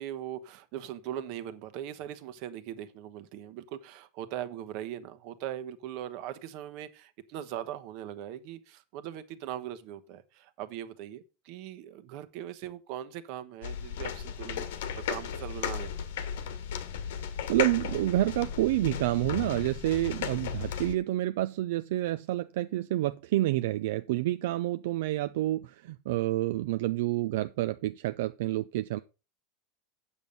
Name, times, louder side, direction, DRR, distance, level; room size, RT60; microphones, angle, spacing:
voice 1, 0.0-15.9, right 11 dB, 55° right, 1.1 m, -40 dB
sound 1, 13.6-21.0, left 8 dB, 90° left, 1.3 m, -35 dB
voice 2, 17.5-29.0, right 16 dB, 80° right, 0.4 m, -29 dB
8.1 x 7.2 x 5.3 m
supercardioid pair, 145°, 0 cm